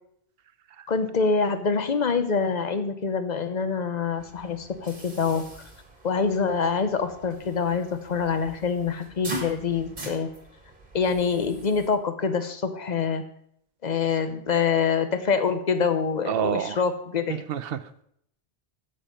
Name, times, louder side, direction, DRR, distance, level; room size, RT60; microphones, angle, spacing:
voice 1, 0.9-5.4 6.0-10.3 10.9-13.2 13.8-17.4, left 5 dB, 45° left, 9 dB, 0.9 m, -25 dB
sound 1, 4.2-11.9, right 1 dB, 45° right, 1.8 m, -42 dB
voice 2, 16.3-16.8 17.3-18.0, right 9 dB, 65° right, 12 dB, 0.8 m, -28 dB
8.7 x 7.8 x 5.1 m, 0.70 s
omnidirectional pair, 1.1 m